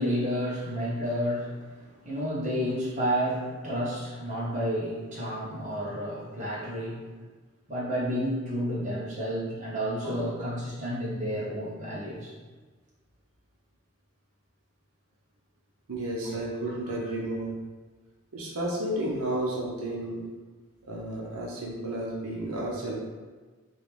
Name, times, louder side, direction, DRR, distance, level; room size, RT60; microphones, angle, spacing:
voice 1, 0.0-7.0 7.7-12.3 16.2-16.3, equal, 35° right, -7 dB, 1.1 m, -31 dB
voice 2, 15.9-17.5 18.3-20.2 20.9-23.0, right 1 dB, 85° right, -3 dB, 0.8 m, -32 dB
3.9 x 3.0 x 3.4 m, 1.4 s
head